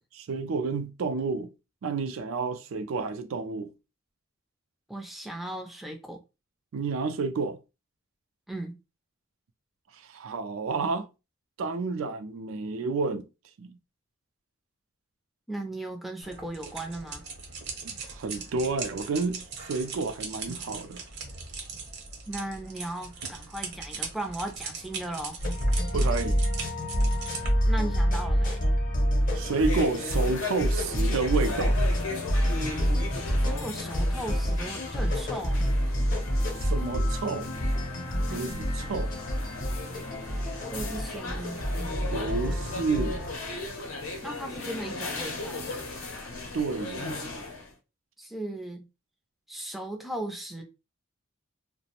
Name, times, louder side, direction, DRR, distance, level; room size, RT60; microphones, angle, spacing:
voice 1, 0.1-1.5 1.8-3.7 6.7-7.6 10.0-11.1 11.6-13.3 13.6-13.8 17.8-21.0 25.9-26.4 29.3-31.8 36.6-37.5 38.3-39.1 42.1-43.2 46.5-47.2, right 4 dB, 75° right, 0.4 m, -30 dB
voice 2, 4.9-6.2 8.5-8.7 15.5-17.2 22.3-25.4 27.6-28.6 33.4-35.7 40.7-41.6 44.2-45.7 48.2-48.8 49.5-50.6, right 1 dB, ahead, 0.4 m, -37 dB
sound 1, 16.2-27.5, right 4 dB, 55° right, 0.8 m, -40 dB
sound 2, 25.4-43.3, equal, 40° left, 0.7 m, -27 dB
sound 3, 29.3-47.7, left 3 dB, 80° left, 0.6 m, -37 dB
2.4 x 2.0 x 2.9 m
head